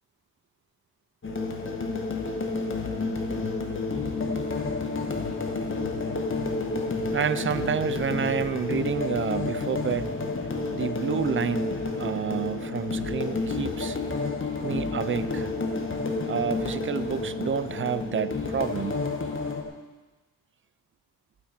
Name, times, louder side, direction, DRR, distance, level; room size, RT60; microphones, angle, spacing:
sound 1, 1.2-19.6, left 3 dB, 30° left, 1.8 m, -30 dB
voice 1, 7.1-10.1 10.7-14.0 14.6-15.5 16.3-19.0, right 7 dB, 35° right, 14 dB, 0.6 m, -29 dB
15.5 x 9.6 x 4.4 m, 1.2 s
cardioid pair, 95°, 37 cm